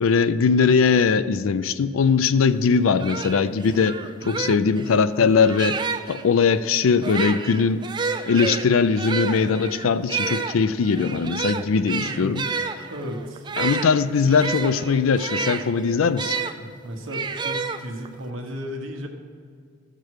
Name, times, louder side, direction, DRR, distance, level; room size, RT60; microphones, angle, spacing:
voice 1, 0.0-4.0 4.3-7.8 8.3-12.4 13.6-16.4, left 5 dB, 85° left, 14 dB, 0.4 m, -20 dB
sound 1, 2.6-2.7 3.0-6.2 6.9-16.5 17.1-18.2, right 5 dB, 20° right, 0.4 m, -30 dB
voice 2, 4.2-4.5 12.0-12.4 12.9-13.5 16.6-19.1, equal, 75° right, 2 dB, 1.2 m, -34 dB
15.0 x 6.8 x 4.7 m, 2.2 s
head